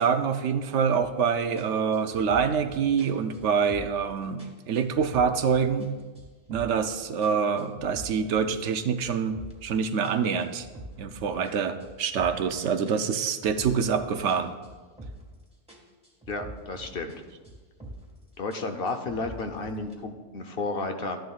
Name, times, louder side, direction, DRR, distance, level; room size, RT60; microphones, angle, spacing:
voice 1, 0.0-5.9 6.5-10.7 11.0-14.6, right 6 dB, 90° right, 9 dB, 1.0 m, -26 dB
sound 1, 1.0-1.2 1.6-4.1 4.4-5.9 6.1-6.9 7.2-9.7 10.0-12.5 12.9-15.4 15.7-17.2 17.4-18.2 18.5-19.9, right 1 dB, 5° right, 1.6 m, -45 dB
voice 2, 16.3-17.1 18.4-21.2, left 3 dB, 55° left, 6 dB, 1.0 m, -32 dB
13.0 x 10.5 x 2.4 m, 1.3 s
omnidirectional pair, 1.2 m